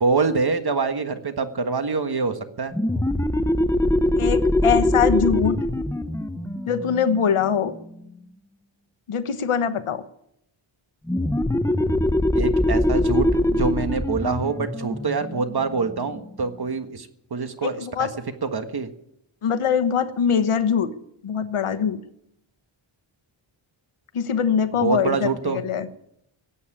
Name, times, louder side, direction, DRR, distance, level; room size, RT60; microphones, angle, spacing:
voice 1, 0.0-2.7 12.3-18.1 18.4-18.9 24.7-25.6, right 4 dB, 50° right, 8 dB, 1.6 m, -25 dB
sound 1, 2.7-8.0 11.1-16.4, left 1 dB, 5° left, 0.8 m, -23 dB
voice 2, 4.2-5.6 6.7-7.8 9.1-10.0 17.6-18.1 19.4-20.9 21.2-22.0 24.1-25.9, left 7 dB, 85° left, 12 dB, 1.2 m, -23 dB
17.0 x 8.5 x 9.8 m, 0.77 s
wide cardioid pair, 90°, 49 cm